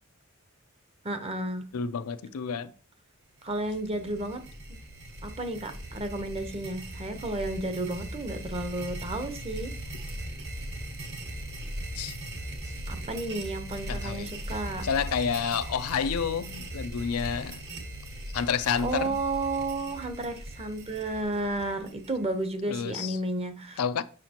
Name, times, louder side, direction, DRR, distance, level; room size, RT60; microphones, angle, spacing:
voice 1, 1.0-1.6 3.4-4.4 5.2-9.7 12.9-14.8 18.8-23.8, right 2 dB, 30° right, 0.8 m, -32 dB
voice 2, 1.7-2.7 11.9-12.2 13.9-14.3 14.8-17.6 18.3-19.1 22.7-23.2 23.8-24.0, left 6 dB, 90° left, 0.5 m, -29 dB
sound 1, 3.4-22.5, right 1 dB, 55° right, 1.4 m, -39 dB
7.5 x 5.7 x 2.9 m
head